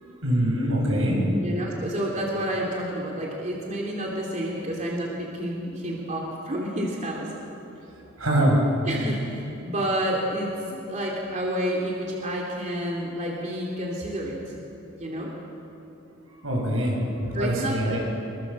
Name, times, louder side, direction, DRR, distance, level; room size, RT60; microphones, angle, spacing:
voice 1, 0.2-1.3 8.2-8.7 10.7-10.8 16.4-18.0, right 1 dB, 80° right, -2 dB, 7.5 m, -24 dB
voice 2, 1.4-7.3 8.8-14.4 15.0-15.4 17.3-18.0, equal, 40° right, -2 dB, 3.1 m, -29 dB
25.0 x 23.5 x 7.3 m, 2.9 s
head